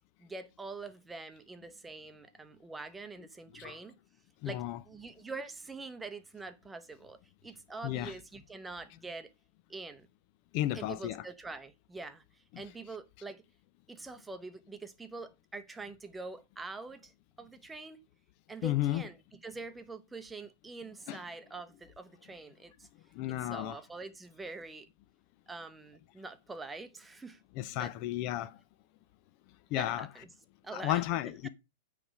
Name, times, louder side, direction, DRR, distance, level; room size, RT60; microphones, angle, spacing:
voice 1, 0.2-4.0 4.4-9.3 9.7-10.1 10.7-13.4 13.9-17.1 17.4-18.0 18.5-22.9 23.3-24.9 25.5-27.4 27.8-27.9 29.7-30.3 30.6-31.0 31.4-31.5, right 3 dB, 10° right, 0.8 m, -45 dB
voice 2, 4.4-4.8 7.8-8.1 10.5-11.2 12.5-12.6 18.6-19.0 21.1-21.2 23.1-23.8 27.6-28.6 29.7-30.1 30.7-31.5, left 14 dB, 45° left, 0.6 m, -33 dB
8.7 x 3.4 x 6.2 m
hypercardioid pair, 125°, 0 cm